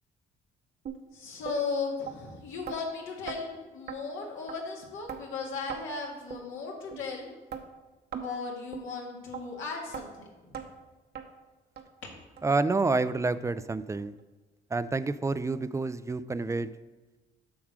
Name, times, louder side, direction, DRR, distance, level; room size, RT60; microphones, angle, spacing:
sound 1, 0.9-1.0 1.5-1.6 2.1-2.2 2.7-2.8 3.3-3.4 3.9-4.0 4.5-4.6 5.1-5.2 5.7-5.8 6.3-6.4 6.9-7.0 7.5-7.6 8.1-8.3 8.7-8.9 9.3-9.4 9.9-10.1 10.5-10.7 11.2-11.3 11.8-11.9 12.4-12.5 13.0-13.1 13.6-13.7, right 8 dB, 55° right, 0.9 m, -38 dB
voice 1, 1.1-7.3 8.2-10.5, left 4 dB, 80° left, -1 dB, 2.0 m, -36 dB
voice 2, 12.4-14.1 14.7-16.7, right 3 dB, 15° right, 15 dB, 0.3 m, -28 dB
7.4 x 6.0 x 4.8 m, 1.2 s
cardioid pair, 90°, 20 cm